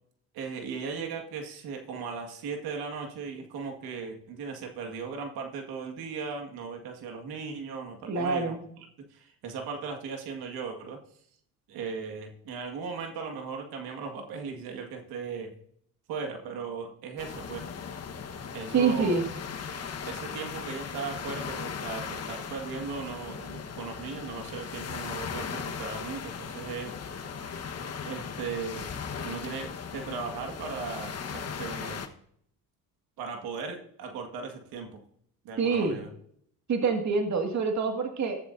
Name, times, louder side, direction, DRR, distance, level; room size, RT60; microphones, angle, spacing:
voice 1, 0.3-11.0 11.7-15.5 16.1-17.7 18.5-19.2 20.0-26.9 27.2-27.5 28.0-28.9 29.2-32.0 33.2-35.0 35.4-36.1, right 5 dB, 85° right, 4 dB, 2.0 m, -37 dB
voice 2, 8.1-8.6 18.7-19.2 35.6-35.9 36.7-38.4, right 4 dB, 50° right, 3 dB, 2.1 m, -26 dB
sound 1, 17.2-32.1, left 6 dB, 45° left, 1.4 m, -38 dB
15.0 x 12.5 x 2.7 m, 0.67 s
cardioid pair, 90°, 36 cm